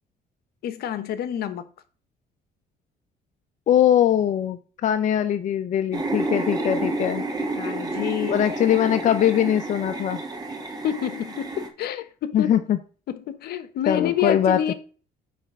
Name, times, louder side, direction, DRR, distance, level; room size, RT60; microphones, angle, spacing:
voice 1, 0.6-1.6 6.9-7.0 7.6-8.5 10.8-12.6 13.1-14.7, left 10 dB, 70° left, 1.0 m, -28 dB
voice 2, 3.7-7.2 8.3-10.2 12.3-12.8 13.9-14.7, left 10 dB, 50° left, 0.5 m, -21 dB
sound 1, 5.9-11.7, right 2 dB, 25° right, 1.6 m, -30 dB
8.5 x 3.4 x 6.0 m
cardioid pair, 110°, 17 cm